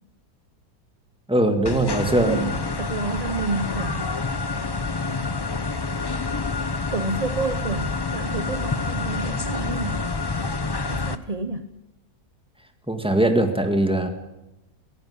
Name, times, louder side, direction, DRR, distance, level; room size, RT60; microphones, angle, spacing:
voice 1, 1.3-2.5 12.9-14.1, right 1 dB, 5° right, 6 dB, 1.8 m, -21 dB
sound 1, 1.6-11.2, left 3 dB, 40° left, 0.3 m, -28 dB
voice 2, 1.9-4.0 6.9-10.1 10.9-11.7, right 3 dB, 35° right, 9 dB, 0.6 m, -30 dB
17.0 x 16.0 x 9.7 m, 0.95 s
omnidirectional pair, 1.7 m